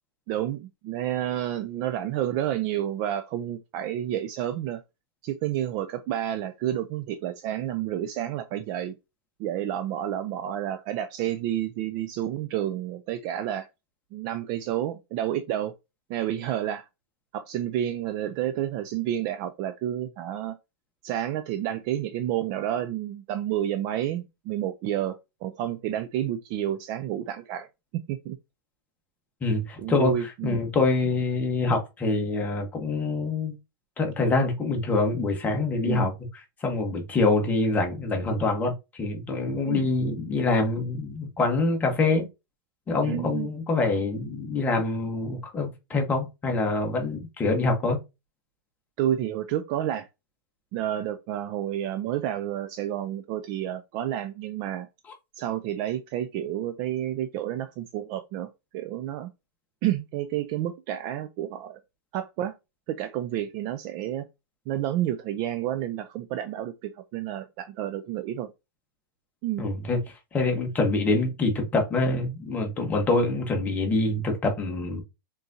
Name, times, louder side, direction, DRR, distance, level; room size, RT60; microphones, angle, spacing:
voice 1, 0.3-4.8 5.2-8.9 9.4-13.7 14.1-15.7 16.1-16.9 17.3-20.6 21.0-27.7 28.1-28.4 29.8-30.6 35.9-36.1 39.7-39.9 43.0-43.5 49.0-50.1 50.7-54.9 55.4-59.3 59.8-61.8 62.1-62.5 62.9-64.3 64.7-68.5 69.4-69.7, right 11 dB, 30° right, 0.4 m, -30 dB
voice 2, 29.4-33.5 34.0-36.1 36.6-42.3 42.9-48.0 69.6-70.0 70.3-75.0, left 3 dB, 15° left, 1.1 m, -25 dB
4.0 x 3.7 x 2.7 m
hypercardioid pair, 150°, 12 cm